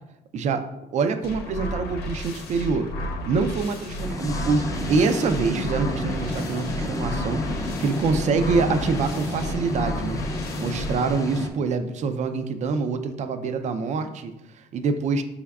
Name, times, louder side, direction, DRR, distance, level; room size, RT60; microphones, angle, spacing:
voice 1, 0.3-0.6 0.9-2.9 3.3-10.2 10.6-15.2, right 4 dB, 45° right, 9 dB, 0.4 m, -25 dB
sound 1, 1.2-11.1, left 1 dB, 70° left, 0.8 m, -33 dB
sound 2, 4.0-11.5, left 1 dB, 20° left, 0.5 m, -31 dB
5.0 x 3.5 x 2.3 m, 0.93 s
cardioid pair, 110°, 17 cm